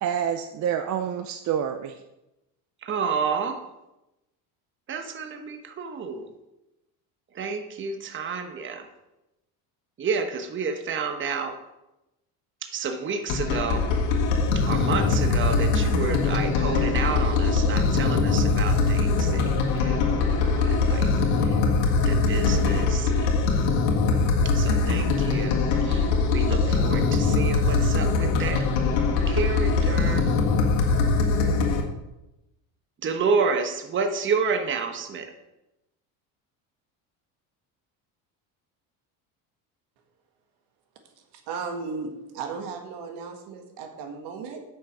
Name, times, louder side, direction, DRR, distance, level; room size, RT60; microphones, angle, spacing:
voice 1, 0.0-2.0, right 8 dB, 45° right, 8 dB, 0.6 m, -28 dB
voice 2, 2.8-3.6 4.9-6.3 7.3-8.9 10.0-11.6 12.6-13.9 14.5-21.1 21.4-21.6 22.0-23.3 24.4-28.7 29.3-30.3 33.0-35.3, right 5 dB, 30° right, 6 dB, 1.0 m, -30 dB
sound 1, 13.3-31.8, left 4 dB, 90° left, 1.8 m, -22 dB
voice 3, 41.3-44.6, right 5 dB, 75° right, 5 dB, 1.8 m, -35 dB
8.4 x 6.5 x 6.1 m, 0.95 s
cardioid pair, 125°, 41 cm